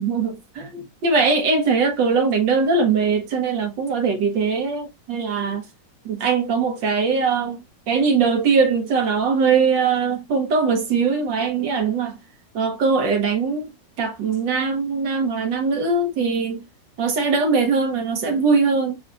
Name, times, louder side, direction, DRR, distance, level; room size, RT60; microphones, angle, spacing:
voice 1, 0.0-5.7 6.1-12.2 12.5-16.7 17.0-19.0, right 5 dB, 80° right, 1.7 m, -21 dB
6.3 x 2.5 x 2.2 m
omnidirectional pair, 2.0 m